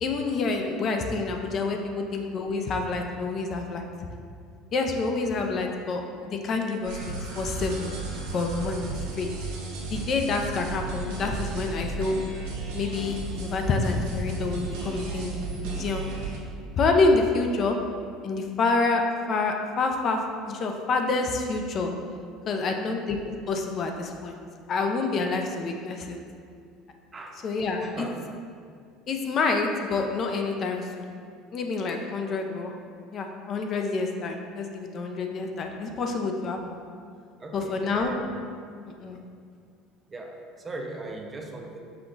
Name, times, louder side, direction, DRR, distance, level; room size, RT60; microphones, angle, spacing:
voice 1, 0.0-3.9 4.7-7.9 8.3-9.3 9.9-12.2 12.7-16.1 16.8-17.8 18.2-21.9 22.5-23.2 23.5-24.3 24.7-26.2 27.4-28.1 29.1-31.1 31.5-32.7 33.1-36.8 37.5-38.1 39.0-39.2, left 3 dB, 45° left, 3 dB, 0.5 m, -27 dB
sound 1, 6.8-16.4, right 2 dB, 80° right, 0.8 m, -34 dB
voice 2, 27.1-27.4 27.8-28.2 37.4-38.3 40.1-41.8, right 2 dB, 25° right, 2 dB, 0.5 m, -38 dB
5.6 x 2.3 x 3.8 m, 2.2 s
supercardioid pair, 100°, 0 cm